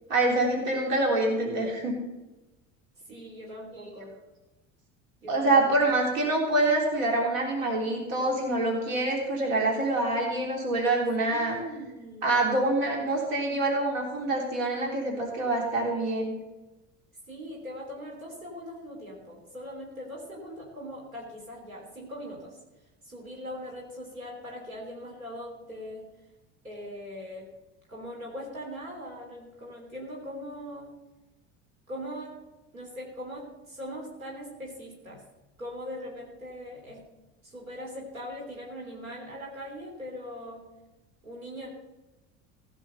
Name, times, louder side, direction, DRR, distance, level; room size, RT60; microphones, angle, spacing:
voice 1, 0.1-1.9 3.7-3.8 5.3-11.6 12.2-16.4, right 2 dB, 70° right, -1 dB, 3.4 m, -26 dB
voice 2, 3.1-4.2 5.2-5.7 11.2-12.3 17.3-22.6 23.0-26.1 26.6-27.5 27.9-30.9 31.9-32.3 32.7-35.2 35.6-37.1 37.4-40.7 41.2-41.7, equal, 90° right, -2 dB, 3.5 m, -40 dB
16.0 x 6.2 x 6.7 m, 1.1 s
hypercardioid pair, 70°, 40 cm